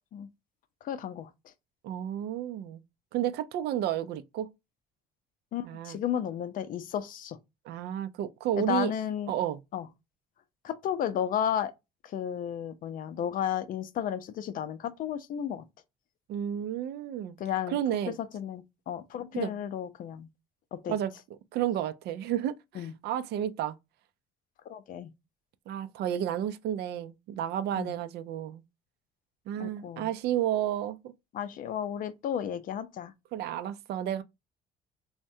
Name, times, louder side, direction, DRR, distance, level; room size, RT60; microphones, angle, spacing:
voice 1, 0.8-1.3 5.5-7.4 8.6-9.3 9.7-9.9 10.6-11.7 12.0-15.6 17.4-20.3 20.7-21.0 22.7-22.9 24.7-25.1 27.8-27.9 29.6-30.1 31.3-33.1, left 9 dB, 55° left, 0.5 m, -33 dB
voice 2, 1.8-2.8 3.1-4.5 5.6-6.0 7.7-8.9 9.3-9.6 16.3-17.4 17.7-18.2 19.3-19.5 20.9-21.1 21.5-23.8 25.7-28.6 29.5-31.1 33.3-34.2, right 11 dB, 75° right, 0.4 m, -31 dB
3.4 x 2.1 x 2.6 m
cardioid pair, 110°, 17 cm